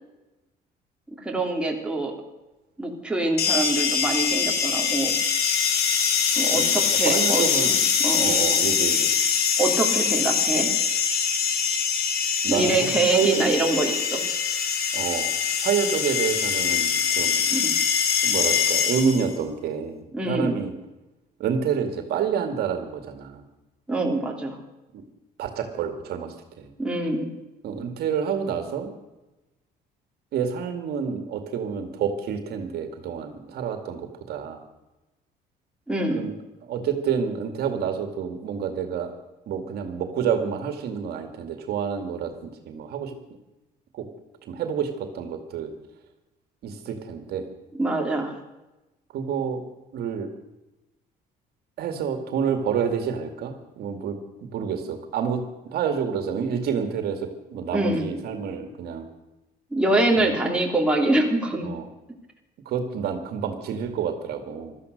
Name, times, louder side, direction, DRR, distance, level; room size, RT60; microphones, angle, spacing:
voice 1, 1.1-2.1 2.8-5.1 6.4-8.4 9.6-10.7 12.5-14.2 17.5-17.7 20.1-20.6 23.9-24.6 26.8-27.3 35.9-36.3 47.8-48.4 57.7-58.1 59.7-61.7, right 2 dB, 5° right, 0 dB, 3.3 m, -25 dB
sound 1, 3.4-19.3, left 7 dB, 70° left, 2.6 m, -23 dB
voice 2, 6.5-7.8 8.2-9.1 12.4-13.4 14.9-15.3 15.6-17.4 18.2-20.7 21.4-23.4 25.4-26.7 27.6-28.9 30.3-34.6 36.1-36.4 36.6-39.1 39.5-43.1 43.9-44.0 44.4-45.7 46.6-47.5 49.1-49.6 49.9-50.3 51.8-59.1 60.1-60.4 61.6-61.9 62.7-64.7, right 7 dB, 70° right, 6 dB, 2.2 m, -28 dB
16.0 x 13.0 x 6.6 m, 1.0 s
cardioid pair, 110°, 17 cm